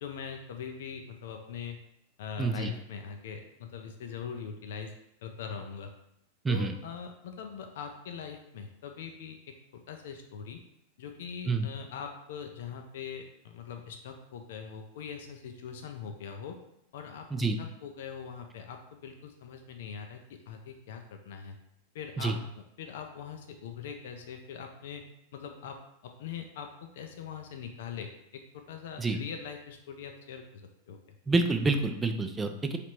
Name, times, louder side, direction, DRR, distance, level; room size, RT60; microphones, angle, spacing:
voice 1, 0.0-1.8 2.2-4.9 5.2-5.9 6.5-10.6 11.0-16.6 16.9-21.6 21.9-25.0 25.3-25.8 26.0-31.2, left 7 dB, 55° left, 5 dB, 0.4 m, -42 dB
voice 2, 2.4-2.7 6.4-6.7 11.5-11.7 17.3-17.6 22.2-22.4 29.0-29.2 31.3-32.8, right 3 dB, 15° right, 6 dB, 0.4 m, -27 dB
3.3 x 2.8 x 4.4 m, 0.78 s
figure-of-eight pair, 90°, 0 cm